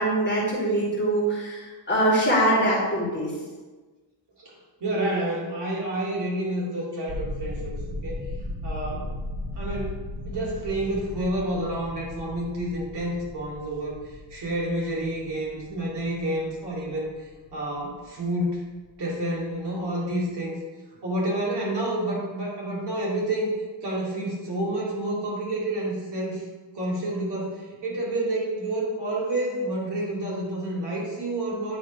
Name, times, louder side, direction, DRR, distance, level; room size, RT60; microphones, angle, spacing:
voice 1, 0.0-3.3, right 1 dB, 20° left, -6 dB, 2.3 m, -23 dB
voice 2, 4.8-7.7 8.0-8.2 8.6-9.1 9.6-10.0 10.2-18.6 19.0-20.6 21.0-23.5 23.8-26.4 26.7-31.8, right 1 dB, 55° right, -5 dB, 2.4 m, -29 dB
sound 1, 7.1-18.9 19.2-19.6 19.9-20.1, left 1 dB, 30° right, 1.1 m, -37 dB
9.7 x 3.7 x 5.0 m, 1.3 s
wide cardioid pair, 175°, 49 cm